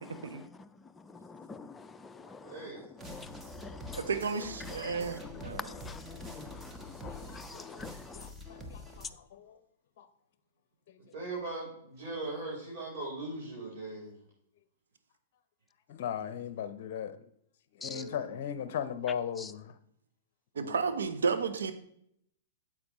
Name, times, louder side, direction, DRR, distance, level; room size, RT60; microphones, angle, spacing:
voice 1, 0.1-4.1 4.6-8.3 17.8-18.0 19.4-19.5, left 4 dB, 15° left, 0.5 m, -46 dB
voice 2, 2.4-2.9 11.1-14.2 17.8-18.3 20.5-21.0, right 2 dB, 55° right, 3.9 m, -40 dB
sound 1, 3.0-9.1, left 1 dB, 10° right, 1.3 m, -46 dB
voice 3, 3.9-5.6 20.5-21.7, right 5 dB, 75° right, 1.0 m, -32 dB
voice 4, 7.0-7.8 8.1-9.6 10.0-10.1 10.9-11.0 15.9-17.3 17.8-19.8, left 8 dB, 55° left, 0.7 m, -38 dB
9.6 x 7.5 x 3.0 m
figure-of-eight pair, 110°, 0 cm